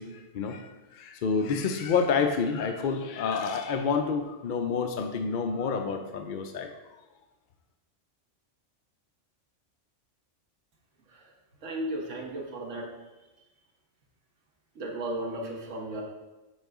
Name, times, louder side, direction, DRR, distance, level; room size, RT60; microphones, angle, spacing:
voice 1, 0.0-6.7, left 5 dB, 60° left, 5 dB, 0.5 m, -29 dB
voice 2, 11.6-12.9 14.7-16.0, right 1 dB, 85° right, 0 dB, 1.5 m, -35 dB
9.6 x 3.8 x 3.6 m, 1.1 s
omnidirectional pair, 1.2 m